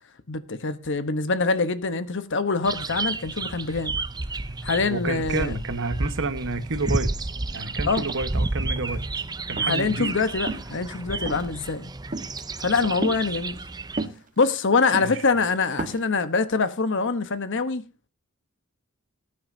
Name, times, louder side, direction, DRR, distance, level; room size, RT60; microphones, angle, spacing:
voice 1, 0.3-3.9 4.6-5.6 7.8-8.0 9.6-11.9 12.6-13.6 14.4-17.8, left 4 dB, 60° left, 1.1 m, -24 dB
sound 1, 2.6-14.0, right 3 dB, 20° right, 0.6 m, -31 dB
voice 2, 4.9-7.1 7.5-9.0 9.5-10.1 14.9-15.2, right 3 dB, 65° right, 1.3 m, -29 dB
sound 2, 7.6-7.7 8.0-9.1 9.6-9.9 10.4-10.8 11.2-11.6 12.1-12.4 13.0-13.2 14.0-14.5 14.9-15.2 15.6-16.1, right 2 dB, 40° right, 1.4 m, -33 dB
19.0 x 9.6 x 2.8 m
head